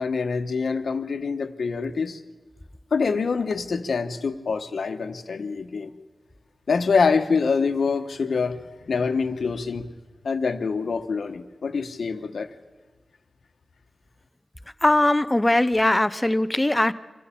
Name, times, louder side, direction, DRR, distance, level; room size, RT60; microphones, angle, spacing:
voice 1, 0.0-2.2 2.9-5.9 6.7-8.6 8.9-9.9 10.2-12.5, left 5 dB, 85° left, 7 dB, 1.2 m, -25 dB
voice 2, 14.8-16.9, left 1 dB, 15° left, 15 dB, 0.7 m, -20 dB
25.5 x 14.5 x 8.6 m, 1.3 s
wide cardioid pair, 105°, 0 cm